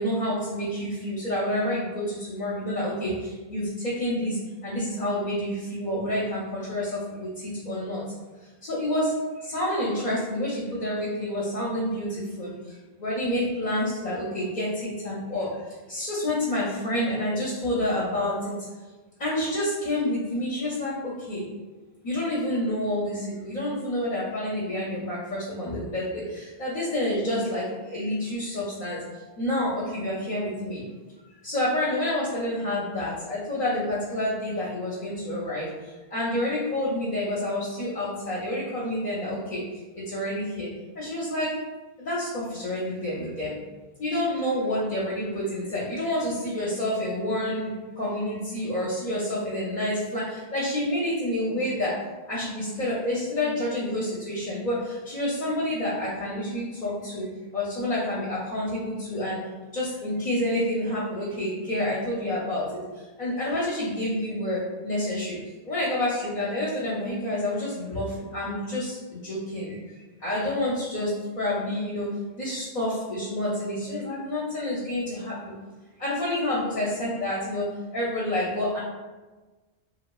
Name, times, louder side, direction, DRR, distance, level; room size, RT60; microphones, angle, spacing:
voice 1, 0.0-8.0 8.4-18.6 19.2-21.5 22.0-30.9 31.4-39.6 40.0-40.7 40.9-41.6 42.0-43.6 44.0-52.0 52.3-57.3 57.5-59.4 59.7-72.1 72.4-75.5 76.0-78.8, left 1 dB, 50° left, -7 dB, 0.6 m, -29 dB
3.0 x 2.1 x 2.2 m, 1.3 s
omnidirectional pair, 1.0 m